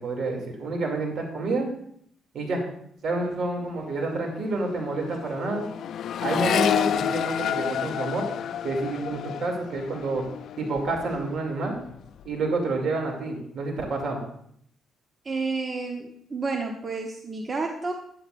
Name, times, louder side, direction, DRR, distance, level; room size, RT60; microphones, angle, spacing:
voice 1, 0.0-1.7 2.3-2.7 3.0-5.7 6.2-8.2 8.6-10.2 10.6-11.8 12.2-14.2, right 3 dB, 60° right, 1 dB, 2.5 m, -28 dB
Accelerating revving vroom, 3.4-3.6 3.9-11.4 11.7-12.4, left 9 dB, 70° left, 0.3 m, -30 dB
voice 2, 15.2-17.9, right 3 dB, 35° right, 2 dB, 0.9 m, -30 dB
12.0 x 9.1 x 2.5 m, 0.69 s
cardioid pair, 90°, 0 cm